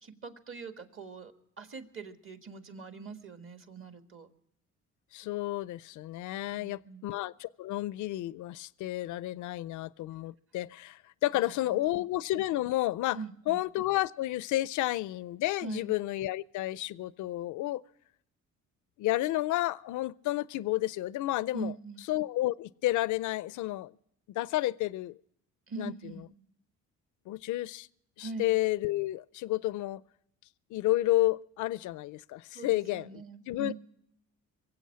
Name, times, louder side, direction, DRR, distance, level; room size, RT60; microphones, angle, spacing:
voice 1, 0.0-4.3 6.5-7.1 11.3-12.0 13.1-13.6 15.6-15.9 21.5-22.0 25.7-26.3 28.2-28.5 32.5-33.7, right 4 dB, 45° right, 1.7 m, -43 dB
voice 2, 5.1-13.2 13.5-17.8 19.0-21.7 22.1-23.9 24.3-25.2 25.8-25.9 27.3-27.9 28.2-30.0 30.7-33.2 33.5-33.7, left 16 dB, 75° left, 0.5 m, -31 dB
23.0 x 8.1 x 7.4 m
cardioid pair, 90°, 30 cm